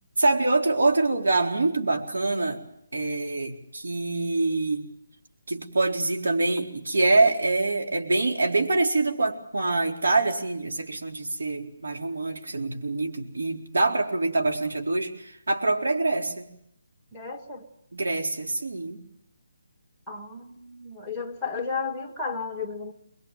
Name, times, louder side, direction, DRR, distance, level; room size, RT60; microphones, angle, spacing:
voice 1, 0.2-2.6 2.9-4.9 5.5-16.5 17.9-19.0, right 2 dB, 80° right, 3 dB, 4.3 m, -25 dB
voice 2, 17.1-17.7 20.1-22.9, left 5 dB, 5° left, 0 dB, 1.9 m, -33 dB
22.5 x 22.0 x 9.1 m, 0.74 s
hypercardioid pair, 165°, 0 cm